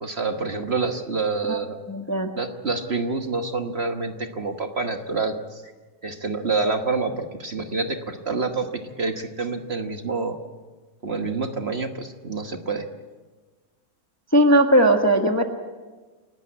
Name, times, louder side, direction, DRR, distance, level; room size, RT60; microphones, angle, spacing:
voice 1, 0.0-1.8 2.4-5.7 6.0-10.4 11.0-12.8, right 4 dB, 40° right, 5 dB, 1.4 m, -27 dB
voice 2, 1.9-2.3 14.3-15.4, right 1 dB, 10° left, 4 dB, 1.1 m, -18 dB
28.5 x 12.5 x 8.4 m, 1.3 s
omnidirectional pair, 1.8 m